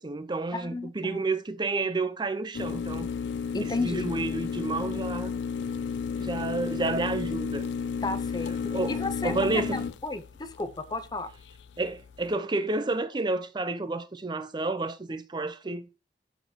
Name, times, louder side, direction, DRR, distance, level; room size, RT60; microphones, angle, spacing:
voice 1, 0.0-3.1 3.6-5.3 6.2-7.7 8.7-9.8 11.8-16.0, right 3 dB, 25° right, 0.6 m, -30 dB
voice 2, 0.5-1.2 3.5-4.1 8.0-8.6 8.9-11.3, left 2 dB, 25° left, 0.6 m, -33 dB
sound 1, 2.5-12.3, left 6 dB, 85° left, 0.4 m, -33 dB
6.8 x 4.1 x 4.4 m
head